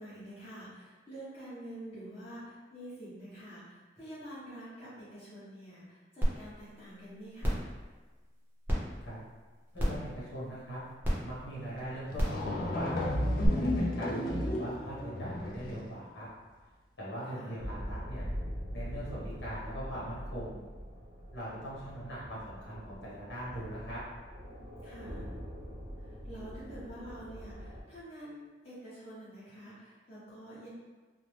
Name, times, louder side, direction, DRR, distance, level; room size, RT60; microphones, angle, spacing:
voice 1, 0.0-7.6 14.1-14.8 17.2-17.6 24.8-25.3 26.0-30.7, right 1 dB, 35° left, -11 dB, 1.0 m, -47 dB
sound 1, 6.2-6.3 6.8-6.9 7.4-7.7 8.7-8.8 9.8-10.0 11.0-11.1 12.1-12.4 13.4-13.5, equal, 10° right, 0.6 m, -28 dB
voice 2, 9.7-10.8 11.2-13.1 13.6-16.3 17.0-18.2 18.7-20.6 21.3-24.0, right 1 dB, 80° left, -7 dB, 1.1 m, -41 dB
sound 2, 11.8-11.9 12.1-15.9, left 1 dB, 55° left, 0.4 m, -32 dB
sound 3, 17.6-27.8, equal, 65° right, 0.6 m, -43 dB
2.6 x 2.0 x 3.1 m, 1.3 s
head